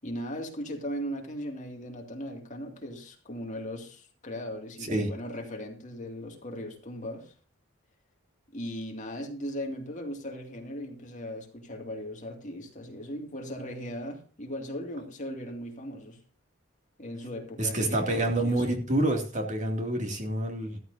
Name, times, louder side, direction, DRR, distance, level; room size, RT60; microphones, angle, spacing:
voice 1, 0.0-7.3 8.5-16.2 17.0-18.7, equal, 35° left, 2 dB, 2.4 m, -38 dB
voice 2, 17.6-20.8, right 1 dB, 35° right, 3 dB, 2.5 m, -27 dB
13.5 x 13.5 x 2.7 m, 0.39 s
head